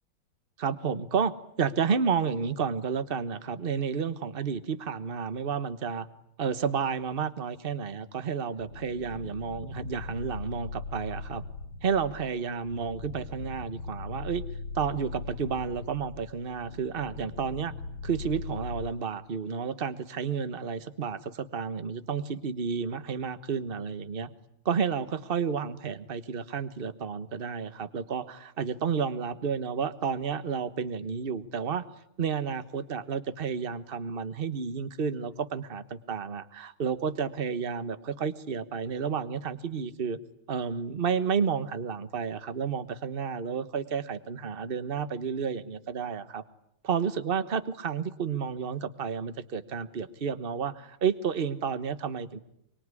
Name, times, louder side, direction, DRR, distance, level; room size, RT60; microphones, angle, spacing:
voice 1, 0.6-6.1 6.4-11.4 11.8-14.4 14.7-17.7 18.0-24.3 24.6-31.8 32.2-40.2 40.5-46.4 46.8-52.4, right 6 dB, 35° right, 13 dB, 1.1 m, -31 dB
sound 1, 8.6-18.9, left 3 dB, 85° left, 2.6 m, -40 dB
25.0 x 24.0 x 9.8 m, 0.74 s
omnidirectional pair, 2.4 m